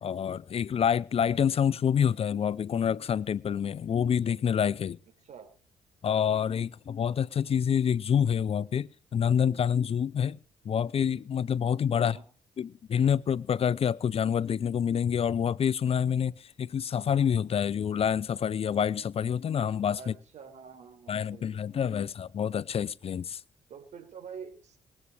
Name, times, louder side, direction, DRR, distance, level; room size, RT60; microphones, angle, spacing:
voice 1, 0.0-5.0 6.0-10.4 10.6-12.2 12.6-20.1 21.1-23.4, left 8 dB, 50° left, 0.6 m, -27 dB
voice 2, 11.9-12.2 19.9-22.0 23.7-24.8, right 6 dB, 65° right, 4.9 m, -47 dB
21.5 x 8.5 x 4.9 m
supercardioid pair, 60°, 13 cm